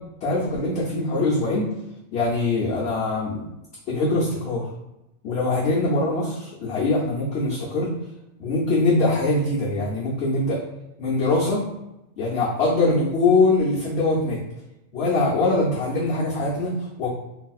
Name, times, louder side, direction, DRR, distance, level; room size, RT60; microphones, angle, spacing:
voice 1, 0.2-1.7 2.1-3.4 3.9-4.7 5.2-7.9 8.4-10.6 11.0-11.6 12.2-14.4 14.9-17.1, left 2 dB, 60° left, -6 dB, 0.8 m, -22 dB
3.3 x 2.7 x 2.3 m, 0.90 s
omnidirectional pair, 1.4 m